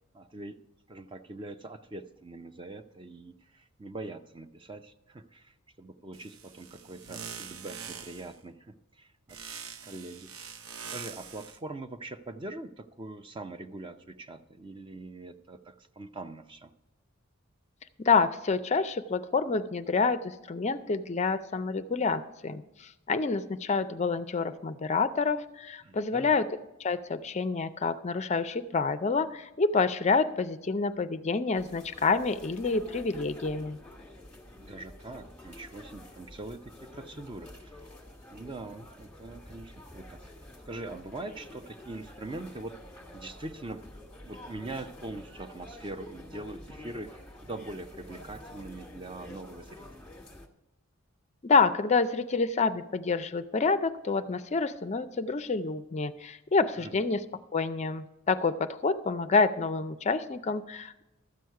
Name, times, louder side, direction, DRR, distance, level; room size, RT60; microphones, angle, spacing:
voice 1, 0.1-0.6 0.9-16.7 25.8-26.4 34.5-37.9 38.3-40.3 40.7-42.8 43.1-43.8 44.2-49.8 56.8-57.0, right 2 dB, 25° right, 9 dB, 0.5 m, -43 dB
sound 1, 6.1-8.4 9.3-11.6, right 7 dB, 80° right, 0.8 m, -44 dB
voice 2, 18.0-26.5 26.8-33.8 51.4-57.2 57.5-61.0, left 4 dB, 30° left, 12 dB, 0.4 m, -28 dB
sound 2, 31.5-50.5, left 1 dB, 5° left, 1.2 m, -48 dB
13.0 x 7.8 x 4.7 m, 0.96 s
head